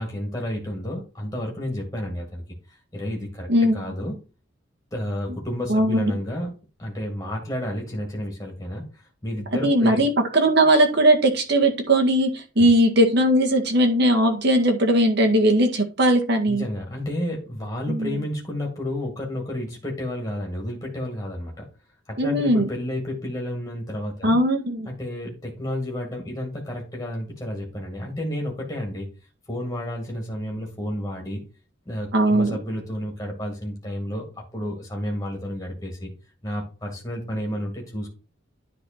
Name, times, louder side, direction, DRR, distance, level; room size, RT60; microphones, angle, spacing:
voice 1, 0.0-4.2 4.9-6.5 6.8-10.0 12.6-12.7 16.5-21.7 22.1-24.4 24.9-29.1 29.5-31.4 31.9-36.1 36.4-38.1, left 1 dB, 15° left, -1 dB, 2.3 m, -31 dB
voice 2, 3.5-3.8 5.7-6.1 9.6-16.6 17.9-18.2 22.2-22.7 24.2-24.9 32.1-32.6, right 1 dB, 55° right, 2 dB, 1.9 m, -19 dB
10.0 x 4.0 x 4.4 m, 0.32 s
head